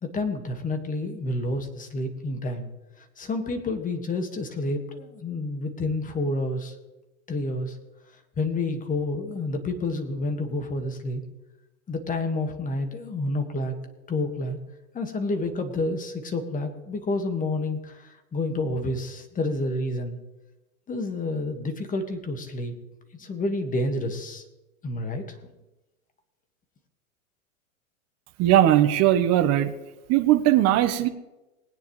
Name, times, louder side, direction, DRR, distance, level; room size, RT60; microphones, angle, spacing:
voice 1, 0.0-2.7 3.0-6.7 7.3-7.8 8.4-11.2 11.9-13.7 14.1-14.6 14.9-20.2 20.9-22.7 23.1-24.4 24.8-25.4, left 2 dB, 20° left, 6 dB, 1.8 m, -29 dB
voice 2, 28.4-29.7 30.1-31.1, right 12 dB, 35° right, 8 dB, 1.2 m, -19 dB
20.0 x 9.5 x 3.2 m, 1.0 s
hypercardioid pair, 110°, 42 cm